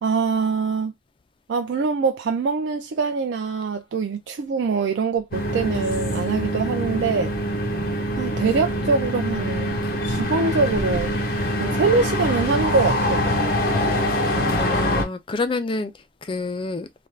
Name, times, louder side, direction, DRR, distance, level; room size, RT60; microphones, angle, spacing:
voice 1, 0.0-0.9 1.5-7.3 8.2-11.2 11.6-13.4, right 4 dB, 85° right, 0.4 m, -24 dB
sound 1, 5.3-15.0, equal, 55° left, 0.8 m, -24 dB
voice 2, 14.1-15.9 16.2-16.9, left 3 dB, 30° left, 0.4 m, -28 dB
2.5 x 2.3 x 3.1 m
head